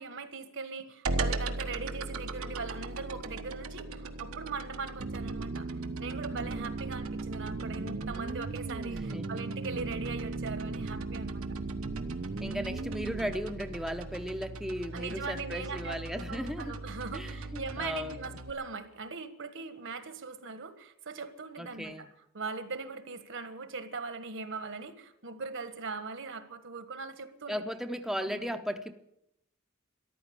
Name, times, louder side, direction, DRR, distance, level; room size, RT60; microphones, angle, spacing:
voice 1, 0.0-5.7 6.0-11.4 14.9-22.1 22.3-27.7 28.2-28.6, right 4 dB, 60° right, 10 dB, 1.5 m, -40 dB
sound 1, 1.1-18.5, right 2 dB, 85° right, 1.3 m, -40 dB
sound 2, 5.0-13.3, right 3 dB, 45° right, 0.5 m, -37 dB
voice 2, 8.9-9.4 12.4-16.7 17.1-18.2 21.6-22.1 27.5-28.9, equal, ahead, 5 dB, 0.7 m, -36 dB
14.0 x 11.5 x 8.7 m, 0.78 s
head